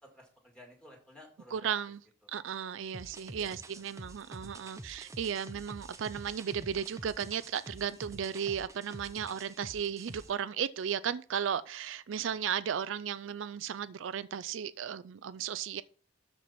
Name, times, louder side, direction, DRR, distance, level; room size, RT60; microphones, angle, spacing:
voice 1, 0.1-1.7 3.3-4.1 8.4-8.6 12.2-12.4, left 1 dB, 5° left, 2.1 m, -56 dB
voice 2, 1.5-2.0 2.3-15.8, right 8 dB, 80° right, 0.4 m, -35 dB
sound 1, 2.9-10.3, right 1 dB, 15° right, 0.6 m, -48 dB
13.0 x 4.6 x 4.2 m
head